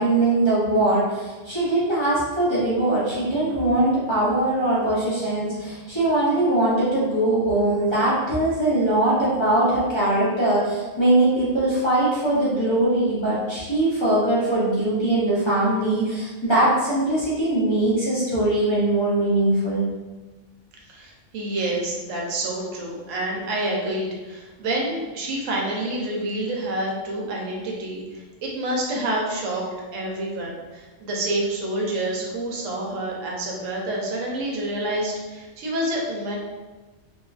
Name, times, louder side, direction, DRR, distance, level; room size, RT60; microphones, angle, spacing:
voice 1, 0.0-19.8, right 1 dB, 30° left, -10 dB, 0.7 m, -21 dB
voice 2, 20.9-29.6 29.9-36.4, right 1 dB, 90° right, -2 dB, 1.0 m, -28 dB
2.9 x 2.4 x 2.3 m, 1.2 s
omnidirectional pair, 1.3 m